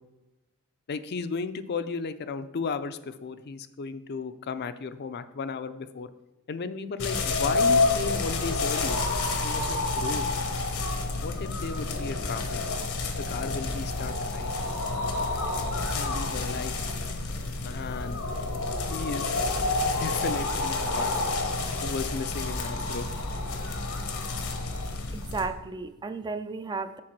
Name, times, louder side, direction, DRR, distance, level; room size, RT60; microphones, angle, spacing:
voice 1, 0.9-6.1 6.5-9.0 9.4-10.3 11.2-12.6 13.2-14.5 15.9-16.7 17.6-18.2 18.9-19.4 20.0-21.2 21.8-23.1, left 5 dB, 50° left, 11 dB, 0.4 m, -34 dB
sound 1, 7.0-25.5, left 3 dB, 80° left, 1.0 m, -29 dB
voice 2, 25.1-27.0, right 4 dB, 20° right, 10 dB, 0.3 m, -33 dB
7.6 x 4.0 x 5.9 m, 1.0 s
head